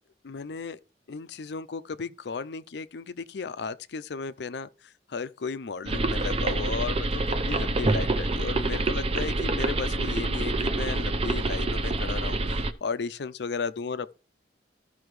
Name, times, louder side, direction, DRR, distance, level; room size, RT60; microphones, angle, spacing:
voice 1, 0.2-0.8 1.1-14.1, left 5 dB, 70° left, 0.5 m, -35 dB
sound 1, 5.9-12.7, right 2 dB, 35° right, 0.6 m, -27 dB
14.0 x 5.6 x 3.2 m
head